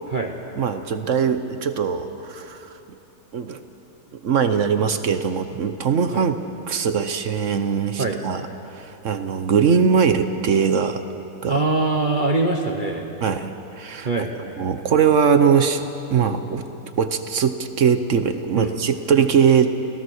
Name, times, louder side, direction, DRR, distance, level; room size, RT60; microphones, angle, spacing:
voice 1, 0.6-2.7 3.3-3.6 4.2-6.4 6.7-8.4 8.7-11.0 11.4-11.6 13.2-14.1 14.6-15.8 16.1-16.7 17.0-19.7, right 6 dB, 55° right, 9 dB, 1.0 m, -21 dB
voice 2, 11.5-13.1 14.0-14.3 18.5-18.7 19.2-19.3, right 3 dB, 35° right, 2 dB, 1.0 m, -23 dB
29.5 x 16.0 x 6.4 m, 3.0 s
omnidirectional pair, 1.9 m